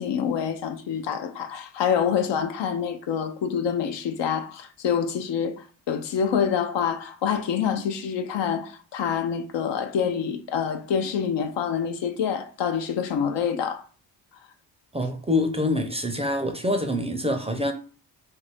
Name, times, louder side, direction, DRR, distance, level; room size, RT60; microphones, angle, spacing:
voice 1, 0.0-13.8, left 7 dB, 60° left, 0.7 m, -26 dB
voice 2, 14.9-17.7, left 1 dB, 15° right, 0.6 m, -25 dB
2.7 x 2.6 x 3.3 m
supercardioid pair, 50°, 48 cm